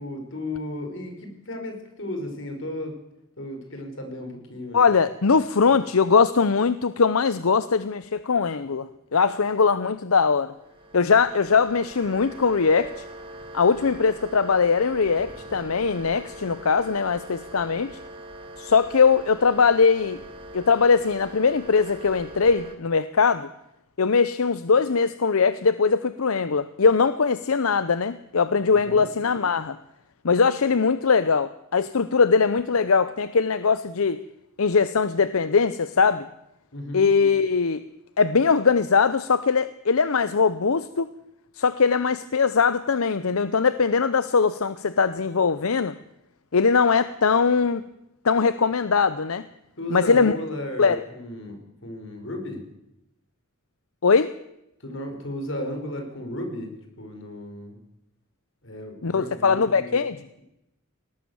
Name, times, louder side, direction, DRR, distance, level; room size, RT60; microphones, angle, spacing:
voice 1, 0.0-2.9 3.4-4.9 5.7-5.8 28.7-29.1 36.7-37.1 49.8-52.6 54.8-57.8 58.6-60.0, left 1 dB, 60° left, 5 dB, 5.1 m, -34 dB
voice 2, 4.7-10.5 10.9-13.0 13.5-18.0 18.6-20.2 20.5-23.5 24.0-29.8 30.2-34.2 34.6-36.3 36.9-37.8 38.2-41.1 41.6-45.9 46.5-47.8 48.2-49.4 49.9-50.4 50.8-51.0 54.0-54.3 59.0-60.2, left 5 dB, 85° left, 14 dB, 0.7 m, -21 dB
sound 1, 10.5-22.7, right 1 dB, 25° right, 2.5 m, -42 dB
21.0 x 18.0 x 7.1 m, 0.85 s
head